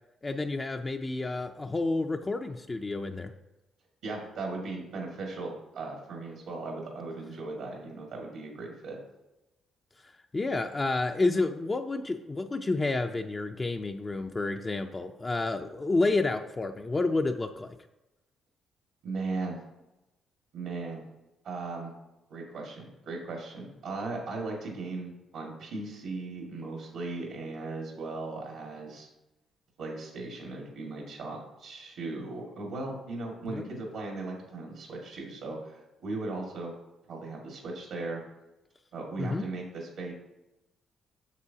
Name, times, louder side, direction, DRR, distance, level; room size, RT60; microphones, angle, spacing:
voice 1, 0.2-3.3 10.3-17.8 33.5-33.6 39.2-39.5, left 3 dB, 25° left, 4 dB, 0.5 m, -30 dB
voice 2, 4.0-9.0 19.0-19.6 20.5-21.0 21.4-21.9 22.3-29.1 29.8-36.7 37.1-38.2 38.9-40.1, right 3 dB, 80° right, -1 dB, 1.8 m, -37 dB
8.2 x 6.8 x 2.8 m, 0.96 s
cardioid pair, 90°, 0 cm